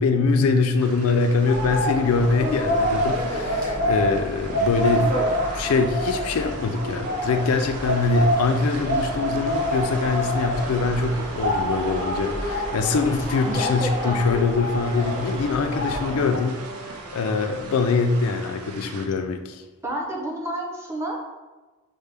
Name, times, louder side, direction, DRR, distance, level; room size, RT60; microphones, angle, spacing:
voice 1, 0.0-5.1 5.5-19.6, left 4 dB, 80° left, 6 dB, 0.4 m, -23 dB
sound 1, 0.8-19.1, right 3 dB, 85° right, 0.5 m, -40 dB
sound 2, 1.4-16.4, equal, 40° right, 1.1 m, -27 dB
Wind instrument woodwind instrument, 10.8-18.6, right 3 dB, 70° right, 1.2 m, -43 dB
voice 2, 13.5-14.4 19.8-21.2, right 1 dB, 10° right, -2 dB, 0.6 m, -30 dB
5.3 x 2.1 x 3.3 m, 1.2 s
head